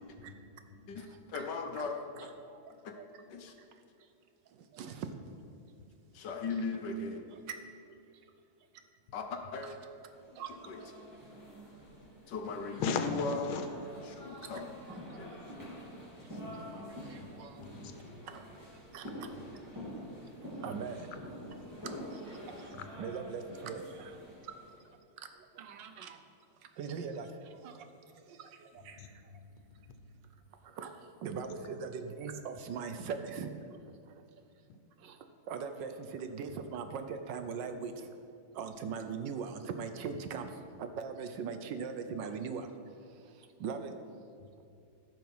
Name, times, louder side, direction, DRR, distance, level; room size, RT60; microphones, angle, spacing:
voice 1, 0.3-1.0 12.0-12.1 12.8-13.7 15.5-15.6 16.5-16.6 17.2-17.3 17.6-18.0 19.1-19.2 21.1-21.2 21.5-21.6 22.7-22.9 28.8-29.9 34.7-34.8 36.5-36.6 44.4-44.5, left 5 dB, 85° left, 7 dB, 1.7 m, -40 dB
voice 2, 0.9-2.3 2.8-3.0 3.3-3.5 6.1-7.3 9.1-9.7 10.5-10.8 12.3-13.6 14.0-14.6 15.2-15.3 15.7-15.8 16.3-16.4, left 4 dB, 65° left, 5 dB, 1.4 m, -38 dB
sound 1, 10.1-24.8, equal, 10° right, 3.0 m, -47 dB
voice 3, 20.6-21.1 23.0-23.8 25.7-26.1 26.8-27.3 30.8-30.9 31.2-33.5 35.5-37.9 38.6-40.5 40.8-42.6 43.6-43.9, right 6 dB, 70° right, 8 dB, 1.3 m, -39 dB
15.0 x 6.2 x 5.5 m, 2.4 s
omnidirectional pair, 2.2 m